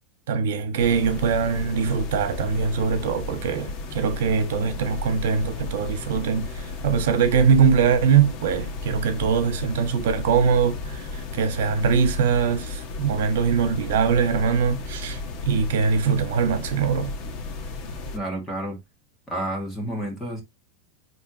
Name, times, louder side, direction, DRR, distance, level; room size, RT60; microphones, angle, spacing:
voice 1, 0.3-17.2, right 6 dB, 70° right, 1.3 m, -22 dB
sound 1, 0.8-18.2, left 3 dB, 40° left, 1.3 m, -34 dB
voice 2, 18.1-18.8 19.3-20.4, right 1 dB, 5° left, 1.8 m, -30 dB
9.8 x 3.3 x 2.9 m
supercardioid pair, 175°, 0 cm